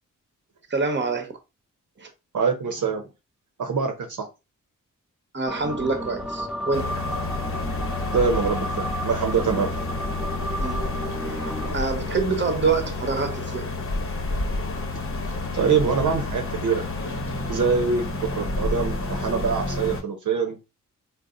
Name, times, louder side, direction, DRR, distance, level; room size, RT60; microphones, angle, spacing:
voice 1, 0.7-1.3 2.0-2.1 5.3-7.1 10.6-10.8 11.2-13.7, right 4 dB, 35° right, 1.0 m, -26 dB
voice 2, 2.3-3.0 3.6-4.3 8.1-9.7 15.5-16.9 17.5-20.6, right 5 dB, 65° right, 0.8 m, -24 dB
sound 1, 5.5-11.7, equal, 5° right, 1.1 m, -32 dB
sound 2, 6.7-20.0, left 2 dB, 40° left, 1.0 m, -30 dB
3.9 x 2.1 x 3.8 m
cardioid pair, 65°, 33 cm